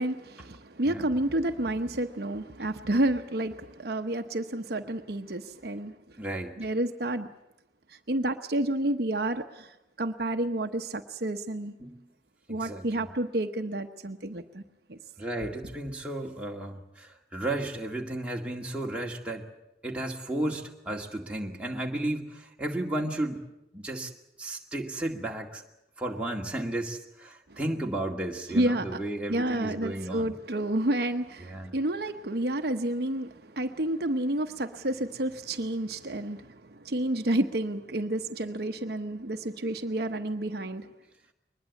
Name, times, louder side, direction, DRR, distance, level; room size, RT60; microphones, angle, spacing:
voice 1, 0.0-6.2 6.6-7.3 7.9-11.7 12.5-14.6 14.9-15.0 27.5-27.6 28.5-29.0 29.3-40.9, right 1 dB, 60° right, 6 dB, 1.0 m, -30 dB
voice 2, 6.2-6.5 11.8-12.1 12.5-13.1 15.2-19.5 19.8-23.4 23.7-24.1 24.4-25.6 26.0-30.4 31.4-31.7, right 1 dB, 5° right, -1 dB, 2.1 m, -33 dB
22.5 x 20.5 x 8.4 m, 0.88 s
head